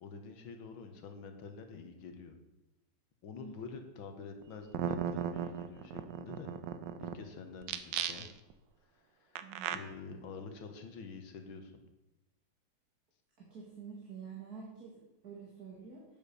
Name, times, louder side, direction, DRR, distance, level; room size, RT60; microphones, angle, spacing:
voice 1, 0.0-2.4 3.2-6.5 7.0-8.3 8.9-9.4 9.7-11.7, left 5 dB, 90° left, 6 dB, 2.1 m, -47 dB
sound 1, 4.4-4.5 4.7-7.1 7.6-8.5 9.4-9.8, right 9 dB, 70° right, 1.3 m, -36 dB
voice 2, 9.4-9.8 10.1-10.2 13.4-16.0, right 6 dB, 50° right, -3 dB, 2.3 m, -48 dB
8.8 x 7.1 x 6.8 m, 0.97 s
omnidirectional pair, 2.1 m